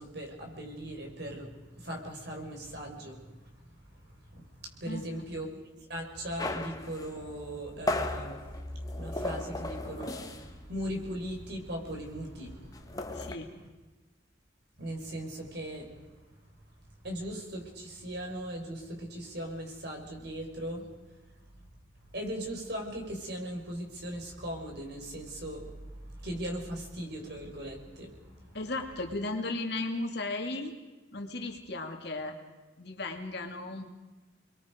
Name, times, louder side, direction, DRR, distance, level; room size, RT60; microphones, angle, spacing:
voice 1, 0.0-13.4 14.8-15.9 17.0-20.9 22.1-28.6, equal, 55° right, 2 dB, 5.3 m, -39 dB
voice 2, 4.9-5.3 13.1-13.5 28.5-30.7 31.1-32.3 32.8-33.8, left 2 dB, 55° left, 4 dB, 2.6 m, -35 dB
sound 1, 6.4-10.6 10.9-11.1 11.4-13.3, left 2 dB, 20° left, 1.4 m, -36 dB
29.5 x 22.0 x 5.3 m, 1.2 s
head